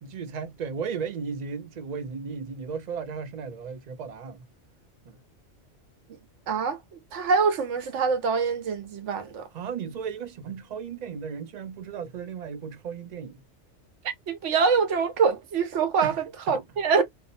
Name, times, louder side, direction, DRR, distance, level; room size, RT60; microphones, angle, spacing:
voice 1, 0.0-4.4 5.1-5.2 9.5-13.4 16.0-16.2 16.5-16.6, right 6 dB, 55° right, 0.5 m, -35 dB
voice 2, 6.5-9.5 14.3-17.0, right 5 dB, 85° right, 1.0 m, -25 dB
2.7 x 2.0 x 2.6 m
omnidirectional pair, 1.2 m